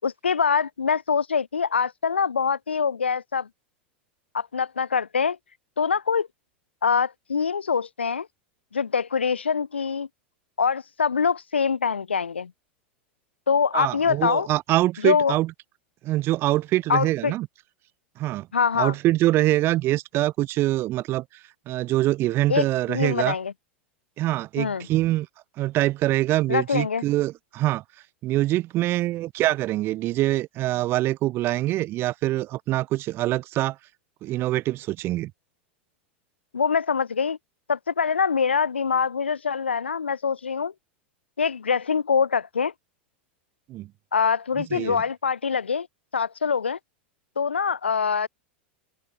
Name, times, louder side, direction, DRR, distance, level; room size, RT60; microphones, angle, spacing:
voice 1, 0.0-3.5 4.3-5.4 5.8-6.3 6.8-8.3 8.7-10.1 10.6-12.5 13.5-14.5 15.0-15.4 16.9-17.3 18.5-18.9 22.5-23.5 24.6-24.9 26.5-27.0 36.5-37.4 37.7-40.7 41.4-42.7 44.1-45.9 46.1-46.8 47.4-48.3, left 6 dB, 80° left, 6.5 m, -24 dB
voice 2, 13.7-15.5 16.0-17.5 18.2-18.5 18.8-21.2 21.7-23.4 24.2-25.3 25.6-27.8 28.2-33.8 34.2-35.3 43.7-43.9 44.6-45.0, right 16 dB, 40° right, 7.3 m, -24 dB
open air
figure-of-eight pair, 90°, 6 cm